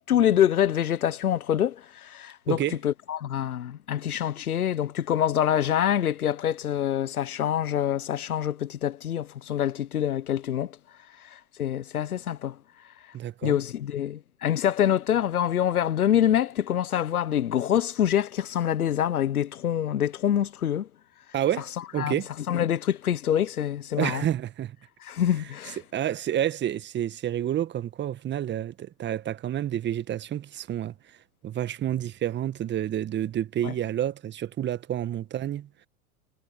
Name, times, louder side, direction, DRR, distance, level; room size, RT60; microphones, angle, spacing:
voice 1, 0.1-10.8 11.2-12.6 13.4-20.9 21.8-22.1 22.5-24.3 25.0-25.8 33.6-33.7, left 10 dB, 75° left, 1.2 m, -26 dB
voice 2, 13.1-13.6 21.3-21.7 21.9-22.3 24.0-24.8 25.9-30.9 31.4-35.7, right 11 dB, 25° right, 1.6 m, -29 dB
hypercardioid pair, 100°, 44 cm